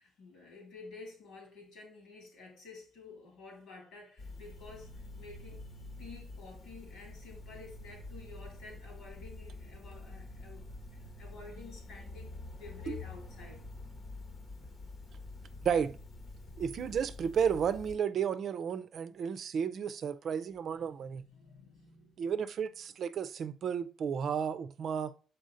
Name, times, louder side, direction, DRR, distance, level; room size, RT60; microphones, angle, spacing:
voice 1, 0.0-5.7 6.0-13.6 20.2-22.4 22.8-22.9, left 3 dB, 90° left, 3.1 m, -52 dB
sound 1, 4.2-18.0, left 2 dB, 55° left, 1.2 m, -47 dB
voice 2, 15.6-16.0 16.6-21.2 22.2-25.1, right 7 dB, 60° right, 0.5 m, -33 dB
6.3 x 4.5 x 3.9 m
cardioid pair, 90°, 0 cm